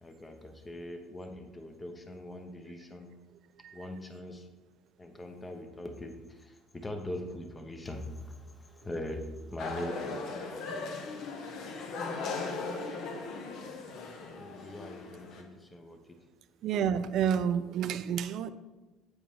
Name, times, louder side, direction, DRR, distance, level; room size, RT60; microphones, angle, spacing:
voice 1, 0.0-3.2 3.7-4.5 5.0-11.1 14.2-16.2, left 1 dB, 15° left, 6 dB, 0.8 m, -42 dB
sound 1, 9.6-15.4, left 3 dB, 55° left, 1.0 m, -38 dB
voice 2, 16.6-18.5, right 8 dB, 55° right, 13 dB, 0.4 m, -29 dB
8.5 x 4.7 x 3.6 m, 1.2 s
cardioid pair, 130°, 0 cm